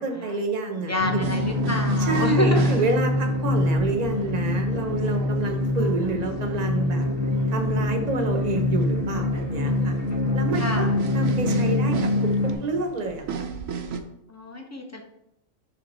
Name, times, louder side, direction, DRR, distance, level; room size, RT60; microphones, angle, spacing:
voice 1, 0.0-1.2 2.0-7.1 7.5-10.0 10.3-12.1 12.6-13.2, right 3 dB, 35° right, 4 dB, 0.8 m, -28 dB
voice 2, 0.8-2.8 10.6-10.9 14.3-15.0, left 1 dB, 15° left, 1 dB, 0.6 m, -28 dB
sound 1, 1.0-12.5, left 2 dB, 75° left, 1.8 m, -24 dB
sound 2, 1.2-14.0, right 6 dB, 75° right, 1.1 m, -36 dB
6.8 x 3.5 x 4.2 m, 0.81 s
omnidirectional pair, 1.4 m